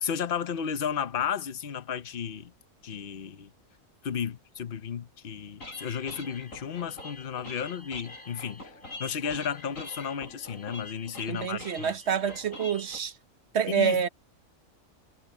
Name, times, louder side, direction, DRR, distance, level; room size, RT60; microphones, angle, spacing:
voice 1, 0.0-2.5 2.8-3.5 4.0-8.6 9.0-11.9 13.7-14.1, left 7 dB, 45° left, 1.0 m, -33 dB
sound 1, 5.6-13.0, left 2 dB, 70° left, 8.6 m, -44 dB
voice 2, 11.3-13.1 13.5-14.1, right 7 dB, 55° right, 1.2 m, -27 dB
omnidirectional pair, 1.4 m